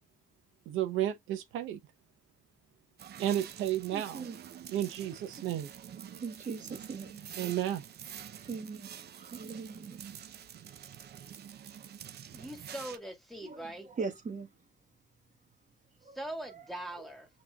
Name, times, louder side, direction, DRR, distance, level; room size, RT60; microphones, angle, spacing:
voice 1, 0.7-1.8 3.2-4.3 4.7-5.7 7.4-7.8, right 12 dB, 85° right, 0.7 m, -32 dB
sound 1, 3.0-13.0, right 9 dB, 55° right, 0.6 m, -47 dB
voice 2, 3.9-4.4 6.0-7.2 8.5-10.1 13.4-14.5 16.0-16.2 16.5-16.7 17.0-17.1, right 5 dB, 40° right, 1.2 m, -41 dB
voice 3, 12.3-13.9 16.1-17.3, right 1 dB, ahead, 1.6 m, -41 dB
6.0 x 3.0 x 2.3 m
cardioid pair, 90°, 20 cm